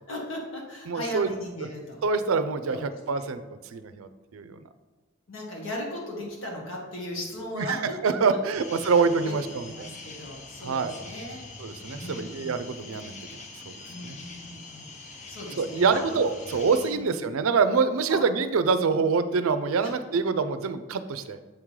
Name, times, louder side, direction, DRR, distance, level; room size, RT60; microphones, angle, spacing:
voice 1, 0.1-2.0 2.7-3.3 5.3-7.8 8.3-8.4 9.2-9.3 9.7-11.4 11.9-12.7 13.9-14.9 15.3-16.2 16.9-17.1 18.1-18.2 19.8-19.9, left 1 dB, 70° left, -2 dB, 1.7 m, -37 dB
voice 2, 0.9-1.3 2.0-4.6 7.5-9.9 10.6-10.9 11.6-14.2 15.6-21.4, right 5 dB, 90° right, 11 dB, 0.5 m, -26 dB
sound 1, 8.5-16.9, left 3 dB, 35° left, 0.7 m, -44 dB
7.6 x 3.7 x 4.7 m, 1.3 s
head